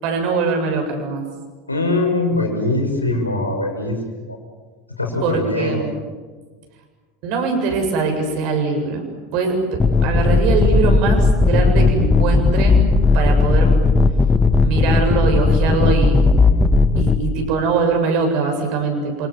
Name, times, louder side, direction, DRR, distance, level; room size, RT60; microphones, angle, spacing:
voice 1, 0.0-1.2 5.2-5.9 7.2-13.8 14.6-16.3 17.0-19.3, right 4 dB, 50° right, 4 dB, 7.5 m, -22 dB
voice 2, 1.7-4.4 5.0-5.8, left 2 dB, 85° left, 2 dB, 6.0 m, -22 dB
sound 1, 9.8-17.2, left 3 dB, 15° left, 1.9 m, -15 dB
28.5 x 27.0 x 7.5 m, 1.4 s
figure-of-eight pair, 75°, 0 cm